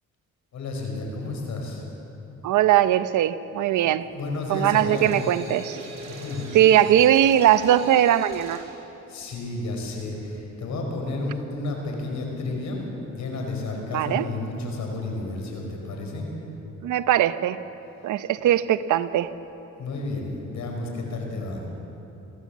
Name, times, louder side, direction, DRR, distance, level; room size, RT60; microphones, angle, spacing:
voice 1, 0.5-1.8 4.1-5.1 6.0-6.5 9.1-16.3 19.8-21.6, left 2 dB, 70° left, 1 dB, 5.3 m, -31 dB
voice 2, 2.4-4.1 4.5-5.8 6.5-8.6 13.9-14.3 16.8-17.6 18.0-19.3, right 11 dB, 75° right, 13 dB, 0.8 m, -20 dB
sound 1, 4.9-8.7, equal, 60° right, 6.0 m, -40 dB
23.0 x 15.5 x 7.4 m, 3.0 s
cardioid pair, 90°, 30 cm